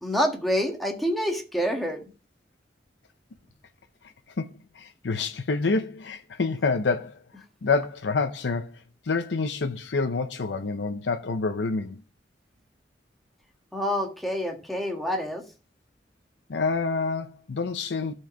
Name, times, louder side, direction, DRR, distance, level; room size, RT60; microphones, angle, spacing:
voice 1, 0.0-2.1 13.7-15.4, equal, ahead, 1.6 m, -27 dB
voice 2, 4.4-7.2 7.6-8.7 9.0-12.0 16.5-18.1, left 4 dB, 90° left, 0.6 m, -27 dB
12.0 x 4.6 x 5.7 m
head